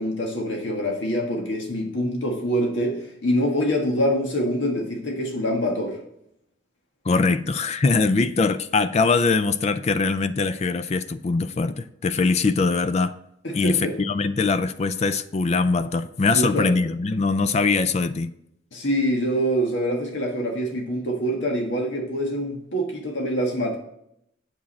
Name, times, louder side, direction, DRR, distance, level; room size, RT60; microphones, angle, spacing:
voice 1, 0.0-6.0 13.4-13.9 16.3-16.7 18.7-23.8, equal, 80° left, 1 dB, 1.6 m, -25 dB
voice 2, 7.0-13.1 13.5-18.3, left 4 dB, 35° left, 12 dB, 0.4 m, -22 dB
8.7 x 7.3 x 4.2 m, 0.76 s
head